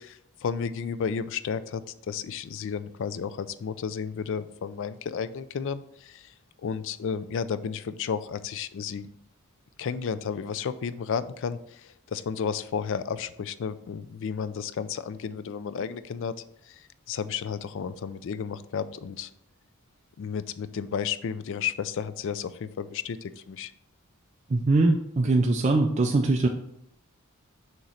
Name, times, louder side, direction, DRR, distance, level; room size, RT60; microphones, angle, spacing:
voice 1, 0.0-6.3 6.6-9.1 9.8-16.3 16.7-16.8 17.1-19.3 20.2-23.7, left 6 dB, 60° left, 14 dB, 0.4 m, -32 dB
voice 2, 24.5-26.5, right 2 dB, 35° right, 2 dB, 0.4 m, -22 dB
6.4 x 3.0 x 5.6 m, 0.74 s
head